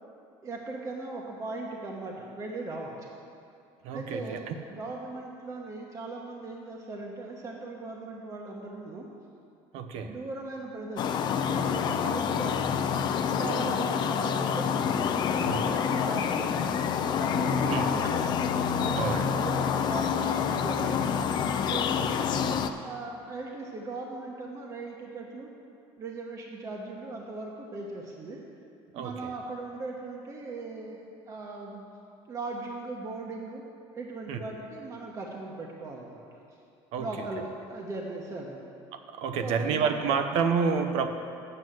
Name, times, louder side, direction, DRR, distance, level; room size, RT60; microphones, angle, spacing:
voice 1, 0.4-3.1 3.9-9.1 10.1-11.2 11.5-12.7 13.4-14.8 15.5-16.6 17.1-18.3 18.8-21.0 21.7-22.5 22.8-25.5 26.0-28.4 28.9-31.8 32.3-33.6 33.9-36.4 37.0-38.6 39.4-40.2, right 3 dB, 30° right, -1 dB, 1.0 m, -38 dB
voice 2, 3.8-4.5 9.7-10.2 15.4-15.7 17.7-17.9 18.2-18.3 19.0-19.3 22.0-22.4 28.9-29.3 34.3-34.4 36.9-37.1 39.1-41.1, right 6 dB, 70° right, 6 dB, 0.8 m, -29 dB
sound 1, 11.0-22.7, left 7 dB, 45° left, 0.5 m, -27 dB
7.7 x 6.1 x 7.8 m, 2.5 s
cardioid pair, 120°, 11 cm